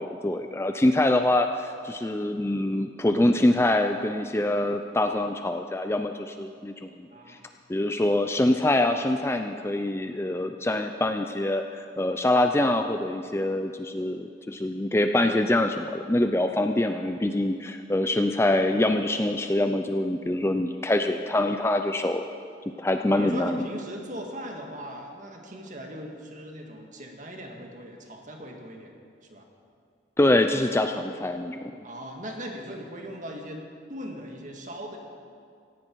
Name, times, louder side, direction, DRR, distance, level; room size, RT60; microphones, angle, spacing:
voice 1, 0.0-6.9 7.3-7.4 7.7-22.2 22.8-23.7 30.2-31.7, left 1 dB, 15° left, 6 dB, 0.4 m, -25 dB
voice 2, 23.2-28.9 29.3-29.5 31.8-33.6 33.9-35.0, equal, 40° right, 2 dB, 1.9 m, -39 dB
17.5 x 15.5 x 4.6 m, 2.3 s
head